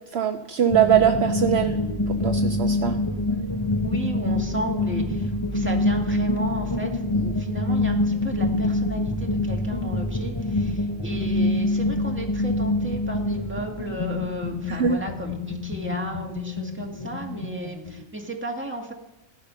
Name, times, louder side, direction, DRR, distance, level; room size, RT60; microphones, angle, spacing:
voice 1, 0.1-1.8 2.1-3.0 14.7-15.0, right 9 dB, 60° right, 6 dB, 0.9 m, -22 dB
sound 1, 0.7-18.0, left 2 dB, 25° left, 0.8 m, -26 dB
voice 2, 3.8-18.9, right 1 dB, 10° right, 0 dB, 1.8 m, -34 dB
15.5 x 10.5 x 5.6 m, 0.90 s
omnidirectional pair, 1.3 m